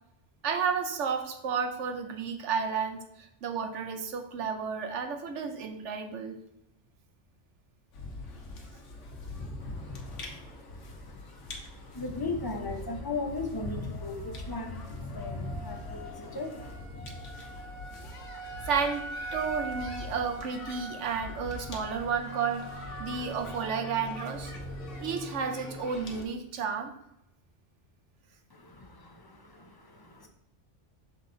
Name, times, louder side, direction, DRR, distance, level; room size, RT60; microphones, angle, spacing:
voice 1, 0.4-6.4 18.7-19.1 19.3-22.7 23.0-24.5 25.0-26.9, right 6 dB, 80° right, 6 dB, 1.0 m, -32 dB
sound 1, 7.9-26.2, left 1 dB, 90° left, 1.3 m, -40 dB
voice 2, 9.6-16.7 28.5-30.3, left 3 dB, 25° left, 3 dB, 0.6 m, -39 dB
6.3 x 4.0 x 3.8 m, 0.83 s
omnidirectional pair, 1.2 m